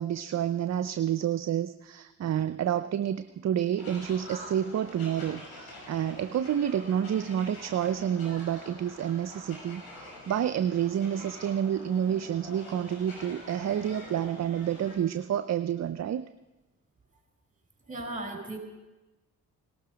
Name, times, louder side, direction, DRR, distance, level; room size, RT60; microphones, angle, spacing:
voice 1, 0.0-16.2, right 9 dB, 45° right, 11 dB, 0.6 m, -29 dB
sound 1, 3.8-15.0, left 1 dB, 70° left, 6.0 m, -46 dB
voice 2, 17.9-18.6, right 2 dB, 20° right, 3 dB, 4.7 m, -36 dB
18.0 x 12.5 x 5.1 m, 1.1 s
supercardioid pair, 55°, 38 cm